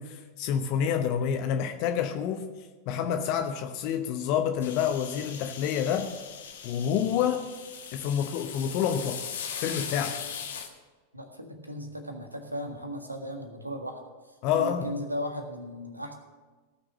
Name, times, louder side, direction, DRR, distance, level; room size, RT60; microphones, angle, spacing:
voice 1, 0.0-2.4 2.9-6.1 6.6-7.4 7.9-9.3 9.6-10.2 14.4-14.9, left 8 dB, 45° left, 7 dB, 0.9 m, -28 dB
sound 1, 4.6-10.7, left 7 dB, 60° left, 1.4 m, -39 dB
voice 2, 11.1-16.1, equal, 85° right, 5 dB, 1.6 m, -37 dB
17.5 x 6.3 x 6.4 m, 1.3 s
figure-of-eight pair, 90°, 0 cm